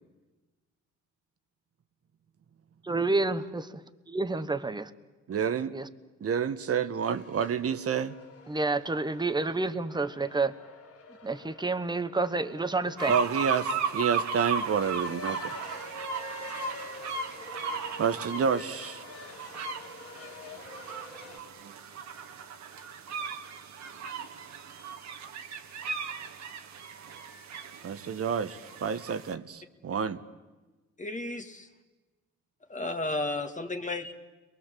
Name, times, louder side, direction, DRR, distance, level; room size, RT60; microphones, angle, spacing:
voice 1, 2.8-3.7 4.1-4.9 5.7-5.9 8.5-10.6 11.2-13.1, right 3 dB, 15° right, 12 dB, 1.2 m, -29 dB
voice 2, 5.3-5.7 6.2-8.1 13.1-15.5 18.0-19.0 27.8-30.2, right 6 dB, 50° right, 12 dB, 1.3 m, -29 dB
sound 1, 7.0-21.4, left 3 dB, 50° left, 2.6 m, -47 dB
sound 2, 13.0-29.3, right 5 dB, 65° right, 1.8 m, -36 dB
voice 3, 31.0-31.7 32.7-34.1, left 2 dB, 25° left, 5 dB, 1.9 m, -33 dB
30.0 x 23.0 x 7.6 m, 1.2 s
cardioid pair, 90°, 30 cm